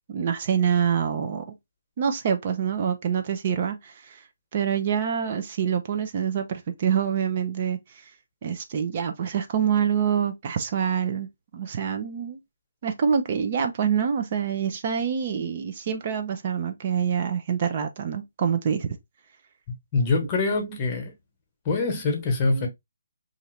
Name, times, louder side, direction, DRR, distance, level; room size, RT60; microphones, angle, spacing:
voice 1, 0.1-1.4 2.0-4.2 4.5-7.8 8.4-12.4 12.8-19.0 20.7-20.8 22.5-22.6, right 7 dB, 40° right, 0.5 m, -26 dB
voice 2, 19.9-21.1 21.6-22.7, left 3 dB, 25° left, 1.0 m, -24 dB
2.7 x 2.5 x 3.0 m
hypercardioid pair, 150°, 0 cm